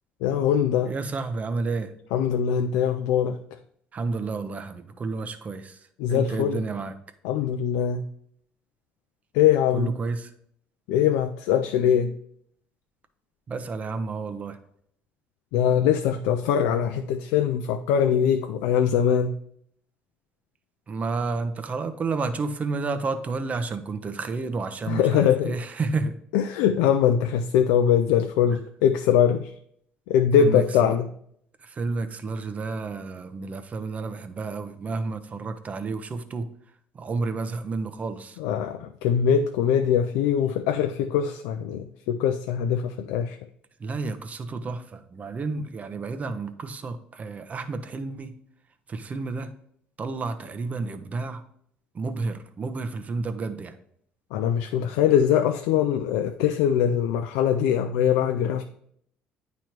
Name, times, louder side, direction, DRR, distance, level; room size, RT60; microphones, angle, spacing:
voice 1, 0.2-0.9 2.1-3.4 6.0-6.6 7.2-8.0 9.3-9.9 10.9-12.1 15.5-19.3 24.9-25.5 26.3-29.6 30.1-31.1 38.4-43.4 54.3-58.6, left 8 dB, 85° left, 7 dB, 0.4 m, -22 dB
voice 2, 0.9-1.9 3.9-6.9 9.7-10.3 13.5-14.6 20.9-26.2 30.4-31.0 31.6-36.5 36.9-38.4 43.8-48.4 48.9-49.6 50.0-51.4 51.9-53.8, right 3 dB, 40° right, 9 dB, 0.8 m, -31 dB
9.0 x 3.1 x 4.5 m, 0.68 s
supercardioid pair, 80°, 4 cm